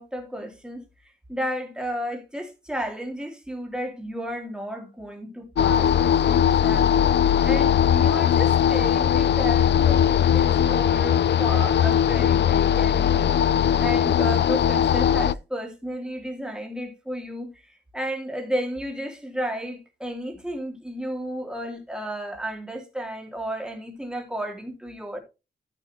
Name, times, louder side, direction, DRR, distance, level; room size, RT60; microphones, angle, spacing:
voice 1, 0.0-6.9 7.4-13.3 13.8-25.2, equal, 5° right, 3.1 m, -33 dB
sound 1, 5.6-15.3, left 9 dB, 80° left, 0.5 m, -20 dB
14.0 x 6.2 x 3.0 m
wide cardioid pair, 155°, 18 cm